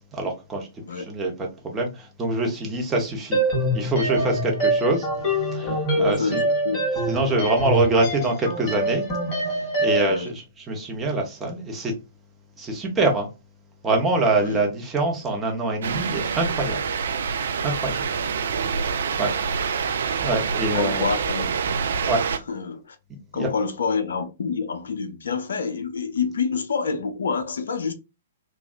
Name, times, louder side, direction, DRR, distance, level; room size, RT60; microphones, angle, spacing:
voice 1, 0.1-0.7 1.0-1.3 1.6-3.4 3.7-5.1 5.5-5.7 6.0-6.4 7.1-9.0 9.8-11.9 12.6-13.3 13.8-16.8 17.6-18.0 18.4-19.3 20.2-21.0 22.1-22.2 23.3-23.5, right 2 dB, 15° right, 0.9 m, -24 dB
sound 1, 3.3-10.2, right 1 dB, 30° left, 1.7 m, -25 dB
voice 2, 5.6-6.9 10.0-10.4 14.4-14.6 19.2-19.4 20.7-21.5 22.3-23.0 23.3-27.9, left 5 dB, 65° left, 0.4 m, -28 dB
sound 2, 15.8-22.4, right 6 dB, 60° right, 0.3 m, -26 dB
3.4 x 2.3 x 2.4 m
figure-of-eight pair, 115°, 0 cm